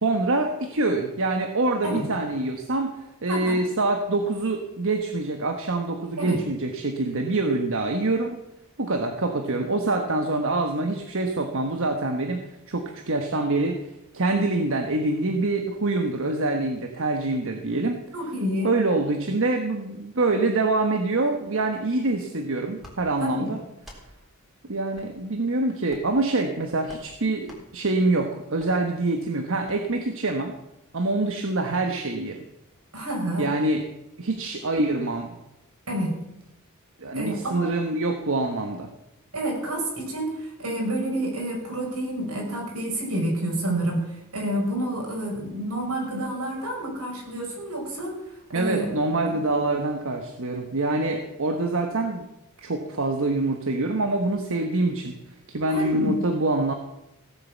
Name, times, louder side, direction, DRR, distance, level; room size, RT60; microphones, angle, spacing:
voice 1, 0.0-8.4 8.8-12.4 12.7-13.9 14.1-18.0 18.6-23.6 24.6-30.6 30.9-32.4 33.4-33.9 34.2-35.3 37.0-38.9 48.5-52.3 52.6-55.1 55.5-56.7, right 2 dB, 60° right, 5 dB, 1.2 m, -25 dB
voice 2, 3.3-3.6 6.2-6.4 18.1-18.7 23.2-23.5 32.9-33.4 35.9-36.1 37.1-37.7 39.3-48.1 48.5-48.9 49.5-49.6 55.7-56.2, right 1 dB, 85° right, -1 dB, 5.9 m, -29 dB
sound 1, 22.8-23.0 23.8-24.0 24.9-25.1 25.8-26.2 26.9-27.1 27.4-27.6 28.6-28.7 29.6-29.8, left 1 dB, ahead, 3.7 m, -46 dB
16.5 x 8.4 x 7.3 m, 0.89 s
head